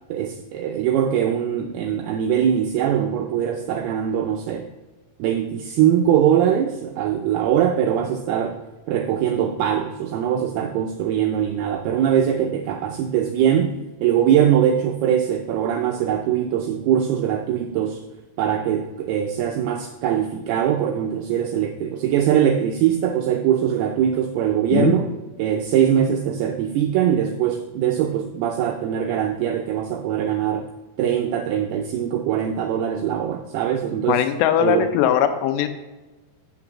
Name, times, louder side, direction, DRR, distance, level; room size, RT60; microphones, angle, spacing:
voice 1, 0.1-4.7 5.2-8.6 8.9-18.0 18.4-25.1 25.4-30.7 31.0-34.3 34.6-34.9, right 9 dB, 85° right, 4 dB, 2.2 m, -22 dB
voice 2, 34.1-35.7, left 10 dB, 80° left, 9 dB, 2.7 m, -20 dB
6.8 x 6.0 x 7.1 m, 1.2 s
omnidirectional pair, 5.1 m